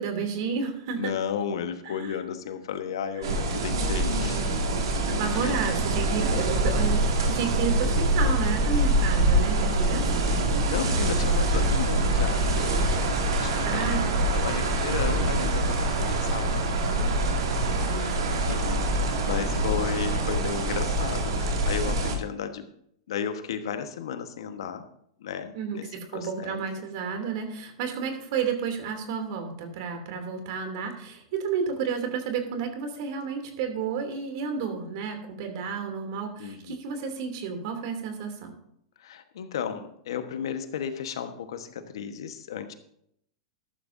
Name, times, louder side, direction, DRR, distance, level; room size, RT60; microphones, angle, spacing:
voice 1, 0.0-1.1 1.8-2.1 5.2-10.5 13.6-14.1 17.4-18.4 25.5-38.5, right 6 dB, 60° right, 5 dB, 2.8 m, -31 dB
voice 2, 0.9-4.5 5.3-5.6 10.7-12.9 13.3-16.6 17.9-18.1 18.4-18.9 19.2-22.7 23.1-24.9 25.2-25.9 26.1-26.6 36.4-36.7 39.0-42.7, left 7 dB, 75° left, 8 dB, 1.3 m, -34 dB
sound 1, 3.2-22.2, right 1 dB, 80° right, 2.3 m, -25 dB
13.5 x 11.5 x 2.7 m, 0.71 s
hypercardioid pair, 115°, 3 cm